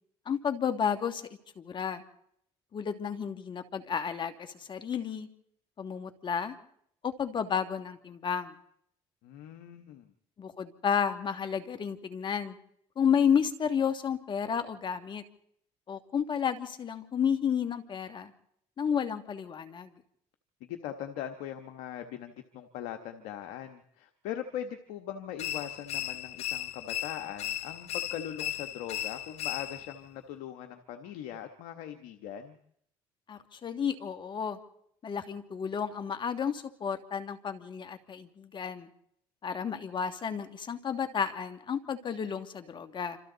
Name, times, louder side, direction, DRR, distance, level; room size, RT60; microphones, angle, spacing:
voice 1, 0.3-1.2 1.6-2.0 2.7-5.3 5.8-6.5 7.0-8.5 10.4-12.6 13.0-15.2 15.9-18.3 18.8-19.9 33.3-34.6 35.0-38.9 39.4-43.2, left 7 dB, 45° left, 8 dB, 2.4 m, -31 dB
voice 2, 9.2-10.1 20.6-32.6, left 10 dB, 85° left, 7 dB, 1.4 m, -40 dB
sound 1, 25.4-30.0, left 13 dB, 70° left, 1.4 m, -36 dB
27.0 x 26.5 x 4.1 m, 0.70 s
supercardioid pair, 80°, 11 cm